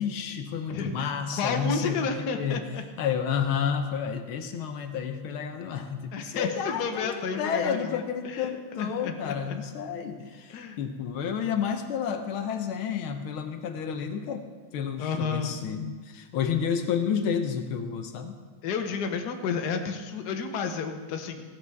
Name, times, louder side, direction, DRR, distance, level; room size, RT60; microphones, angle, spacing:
voice 1, 0.0-2.7 3.0-14.5 14.7-18.4, left 7 dB, 80° left, 7 dB, 1.6 m, -30 dB
voice 2, 0.7-2.8 6.1-9.6 10.5-10.8 15.0-15.6 18.6-21.4, left 5 dB, 55° left, 5 dB, 1.4 m, -31 dB
16.0 x 13.0 x 3.5 m, 1.4 s
omnidirectional pair, 2.3 m